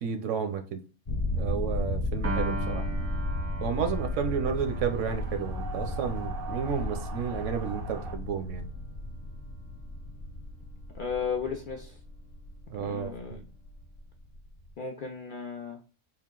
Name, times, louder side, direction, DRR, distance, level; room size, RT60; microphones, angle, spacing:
voice 1, 0.0-0.8 1.4-2.8 3.6-8.6 12.7-13.4, right 7 dB, 80° right, 1.0 m, -32 dB
sound 1, 1.0-14.7, left 1 dB, 35° left, 1.0 m, -34 dB
Piano, 2.2-8.6, right 3 dB, 25° right, 0.3 m, -41 dB
sound 2, 4.6-8.2, right 5 dB, 60° right, 0.7 m, -42 dB
voice 2, 10.9-11.9 12.8-13.4 14.8-15.8, left 6 dB, 60° left, 0.5 m, -34 dB
3.7 x 2.3 x 3.7 m
omnidirectional pair, 1.3 m